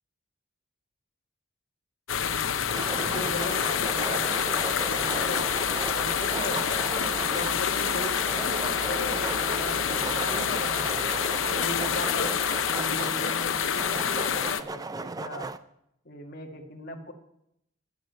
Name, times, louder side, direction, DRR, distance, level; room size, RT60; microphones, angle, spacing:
sound 1, 2.1-14.6, left 8 dB, 65° left, 0.8 m, -27 dB
voice 1, 2.2-5.5 5.9-6.8 7.1-11.0 11.5-12.3 12.7-15.5 16.1-17.1, left 1 dB, 50° left, 3 dB, 1.9 m, -38 dB
sound 2, 2.7-15.6, right 3 dB, 20° right, 0.5 m, -36 dB
16.0 x 7.3 x 9.2 m, 0.79 s
head